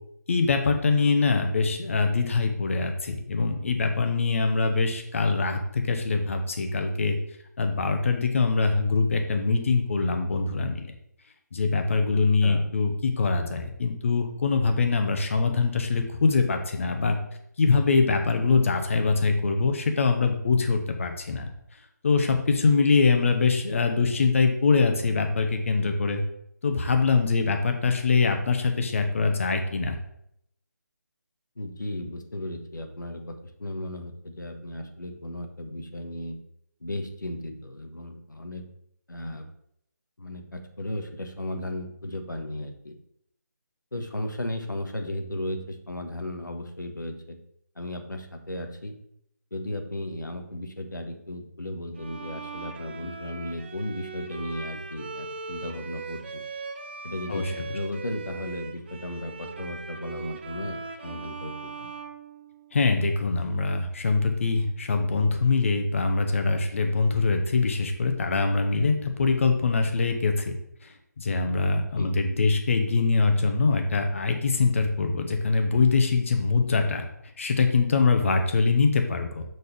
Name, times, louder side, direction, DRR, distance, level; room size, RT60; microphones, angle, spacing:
voice 1, 0.3-7.2 7.6-10.9 11.5-17.2 17.6-21.5 22.0-26.2 26.6-30.0 57.3-57.7 62.7-70.5 71.2-77.0 77.4-79.4, left 4 dB, 45° left, 5 dB, 1.1 m, -23 dB
voice 2, 12.1-12.7 31.6-36.4 36.8-38.6 39.1-39.5 40.2-42.9 43.9-47.4 47.8-49.0 49.5-56.4 57.0-61.9 71.7-72.2, left 1 dB, 80° left, 6 dB, 1.3 m, -35 dB
Bowed string instrument, 52.0-63.0, right 4 dB, 35° right, 0.6 m, -39 dB
6.7 x 4.0 x 5.2 m, 0.74 s
figure-of-eight pair, 155°, 10 cm